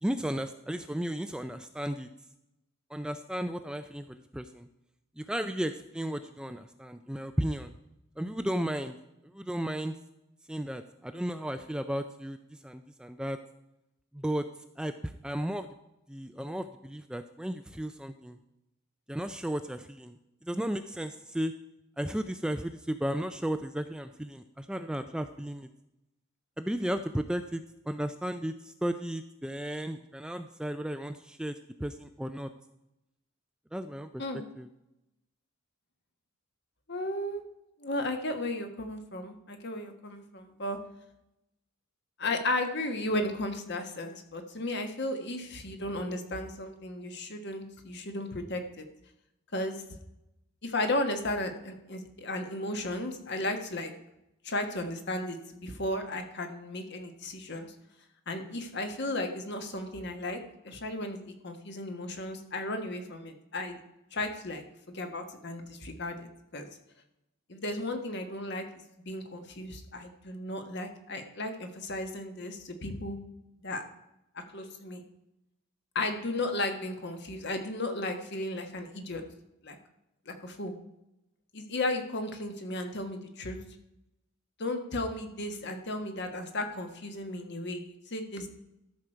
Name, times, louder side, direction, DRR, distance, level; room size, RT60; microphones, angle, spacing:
voice 1, 0.0-2.1 2.9-4.7 5.2-7.7 8.2-9.0 9.2-10.0 10.5-13.4 14.1-14.5 14.8-15.7 16.1-18.4 19.1-21.5 22.0-25.7 26.6-32.5 33.7-34.7, equal, 5° right, 9 dB, 0.3 m, -34 dB
voice 2, 36.9-37.4 37.8-40.8 42.2-48.9 49.5-49.7 50.6-53.9 54.4-57.7 58.3-60.4 60.6-61.2 61.4-63.8 64.1-64.6 64.9-66.7 67.5-68.6 69.1-73.2 73.6-73.8 74.5-75.0 75.9-79.2 79.6-79.8 80.3-80.7 81.5-83.6 84.6-88.5, left 1 dB, 55° left, 6 dB, 1.3 m, -34 dB
13.0 x 6.5 x 4.5 m, 0.89 s
head